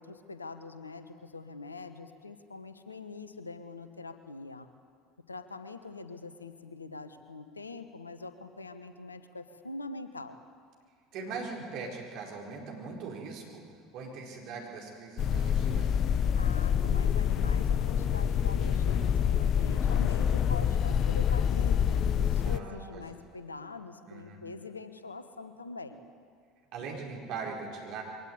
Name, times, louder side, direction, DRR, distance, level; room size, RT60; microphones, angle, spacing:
voice 1, 0.0-4.7 5.3-10.4 16.3-26.0, left 3 dB, 85° left, 10 dB, 1.1 m, -44 dB
voice 2, 11.1-13.7 13.9-16.0 22.4-23.2 24.1-24.4 26.7-28.0, right 4 dB, 55° right, 0 dB, 4.6 m, -40 dB
sound 1, 15.2-22.6, left 8 dB, 45° left, 0.8 m, -26 dB
22.5 x 17.5 x 9.6 m, 2.1 s
figure-of-eight pair, 70°, 0 cm